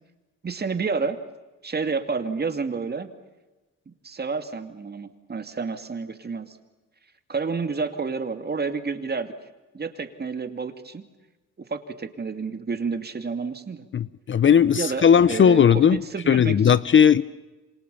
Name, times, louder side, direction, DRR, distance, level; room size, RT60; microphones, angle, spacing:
voice 1, 0.4-1.2 1.6-3.1 3.9-6.6 7.3-9.3 9.7-11.0 11.7-13.9 14.7-16.6, right 4 dB, 30° right, 8 dB, 2.6 m, -30 dB
voice 2, 13.9-17.2, left 8 dB, 40° left, 17 dB, 0.8 m, -17 dB
28.0 x 26.0 x 7.1 m, 1.2 s
cardioid pair, 90°, 30 cm